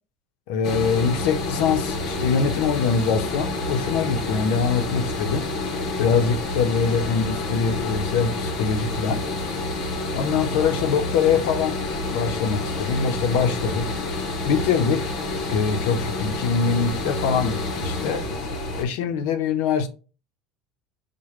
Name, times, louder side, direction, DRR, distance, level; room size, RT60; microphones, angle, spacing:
voice 1, 0.5-5.5 6.0-9.2 10.1-13.9 14.4-15.2 15.5-18.3 18.8-19.9, left 6 dB, 75° left, 0.7 m, -23 dB
sound 1, 0.6-18.8, left 2 dB, 50° left, 0.8 m, -28 dB
4.8 x 2.2 x 3.0 m
cardioid pair, 155°, 0 cm